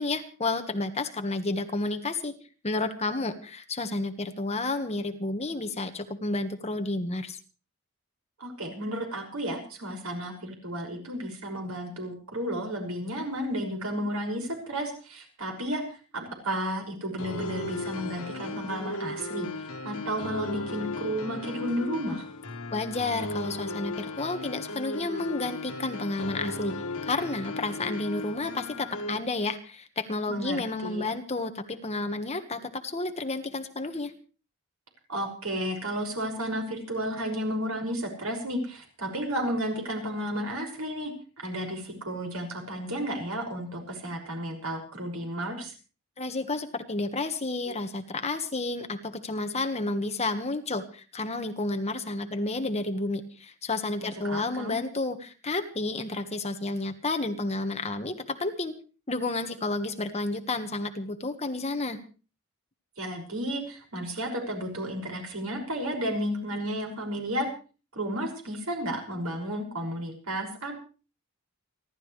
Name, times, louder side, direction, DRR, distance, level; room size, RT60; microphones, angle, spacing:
voice 1, 0.0-2.4 2.6-7.4 22.7-26.7 27.0-34.1 46.2-58.7 59.1-62.0, left 2 dB, 30° left, 7 dB, 1.5 m, -31 dB
voice 2, 8.4-19.5 19.8-22.2 30.3-31.1 35.1-41.1 41.4-45.7 54.0-54.8 63.0-67.5 67.9-70.8, equal, 90° right, 1 dB, 6.2 m, -32 dB
sound 1, 17.2-29.2, left 2 dB, 85° left, 1.7 m, -36 dB
29.5 x 12.5 x 3.3 m, 0.37 s
head